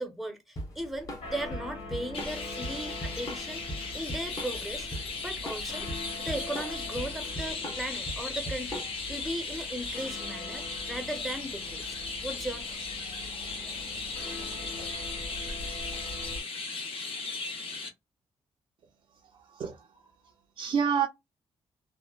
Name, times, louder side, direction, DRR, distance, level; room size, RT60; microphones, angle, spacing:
voice 1, 0.0-3.6 3.9-4.9 5.2-5.9 6.2-11.9 12.2-12.6, right 1 dB, ahead, 0.7 m, -37 dB
sound 1, 0.6-16.4, left 2 dB, 80° left, 1.7 m, -43 dB
Drum kit / Drum, 0.6-9.2, equal, 30° left, 0.9 m, -39 dB
Chirp tweet, 2.1-17.9, left 4 dB, 60° left, 1.0 m, -37 dB
voice 2, 19.2-21.1, right 7 dB, 55° right, 0.5 m, -31 dB
2.9 x 2.1 x 2.3 m
cardioid pair, 120°, 11 cm